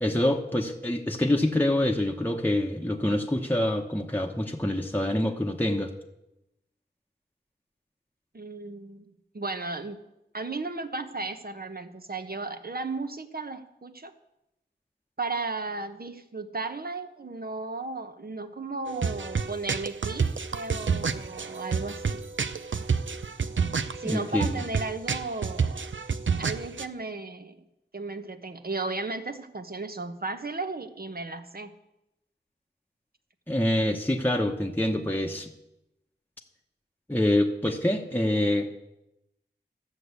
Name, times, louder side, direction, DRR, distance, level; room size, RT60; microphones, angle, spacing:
voice 1, 0.0-5.9 24.0-24.6 33.5-35.5 37.1-38.7, left 1 dB, 10° left, 1 dB, 1.0 m, -26 dB
voice 2, 8.3-9.1 9.3-10.0 10.3-14.1 15.2-22.2 24.0-25.8 26.4-27.6 27.9-31.7, right 3 dB, 55° right, 8 dB, 1.1 m, -35 dB
sound 1, 18.9-26.9, right 5 dB, 85° right, 0.6 m, -29 dB
13.5 x 6.6 x 8.2 m, 0.89 s
wide cardioid pair, 60°, 19 cm